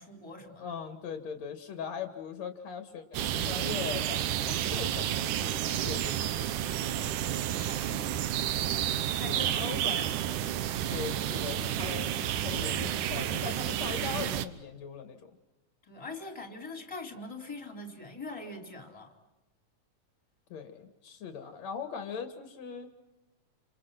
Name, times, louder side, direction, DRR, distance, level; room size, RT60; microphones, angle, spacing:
voice 1, 0.0-0.7 6.8-8.1 9.2-10.1 15.8-19.1, left 2 dB, 10° left, 3 dB, 4.2 m, -43 dB
voice 2, 0.6-6.5 9.3-10.1 10.9-15.2 20.5-22.9, left 6 dB, 65° left, 6 dB, 3.3 m, -40 dB
sound 1, 3.1-14.5, right 11 dB, 90° right, 2.6 m, -31 dB
29.5 x 27.5 x 6.0 m, 1.0 s
omnidirectional pair, 3.5 m